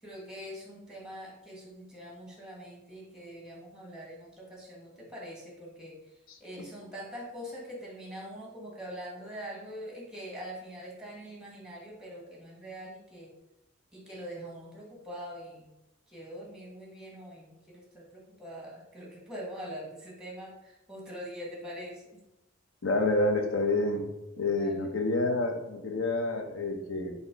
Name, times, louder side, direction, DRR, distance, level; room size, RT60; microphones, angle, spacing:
voice 1, 0.0-13.3 13.9-15.7 16.1-22.2 24.6-24.9, equal, 5° right, -3 dB, 1.2 m, -43 dB
voice 2, 22.8-24.1 24.4-27.1, left 2 dB, 70° left, 4 dB, 0.7 m, -28 dB
4.1 x 2.8 x 4.4 m, 0.91 s
head